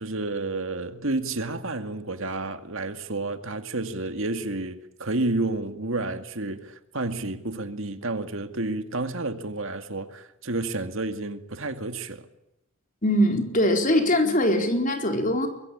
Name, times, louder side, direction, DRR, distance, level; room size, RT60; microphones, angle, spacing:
voice 1, 0.0-12.3, right 2 dB, 60° right, 2.1 m, -30 dB
voice 2, 13.0-15.5, left 1 dB, 35° left, 4.4 m, -22 dB
24.5 x 23.0 x 8.7 m
head